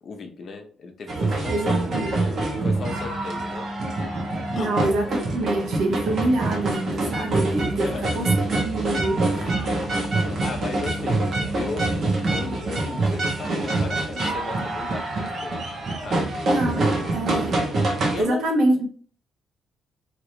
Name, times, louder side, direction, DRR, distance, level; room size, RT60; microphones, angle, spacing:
voice 1, 0.0-1.7 2.2-3.7 4.5-4.7 7.8-8.2 8.9-9.1 9.6-11.9 12.2-15.6 16.0-16.5 18.1-18.4, left 4 dB, 50° left, 0.7 m, -36 dB
sound 1, 1.1-18.2, right 2 dB, 55° right, 1.1 m, -25 dB
voice 2, 1.5-2.3 4.6-7.9 8.1-9.5 16.5-17.6 18.2-18.9, right 2 dB, 70° right, 1.1 m, -26 dB
sound 2, 2.6-12.6, left 1 dB, 30° right, 1.2 m, -36 dB
3.1 x 2.9 x 2.6 m
cardioid pair, 90°, 0 cm